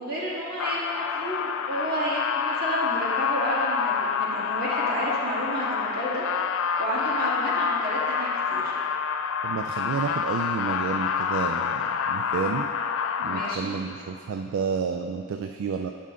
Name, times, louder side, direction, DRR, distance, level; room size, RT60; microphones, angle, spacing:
voice 1, 0.0-6.2 6.8-8.7 13.2-13.7, equal, 45° right, -6 dB, 1.7 m, -30 dB
sound 1, 0.6-13.5, left 7 dB, 65° left, 0.3 m, -28 dB
voice 2, 9.4-12.7 13.2-15.9, right 5 dB, 65° right, 5 dB, 0.3 m, -30 dB
8.5 x 5.4 x 3.7 m, 2.5 s
head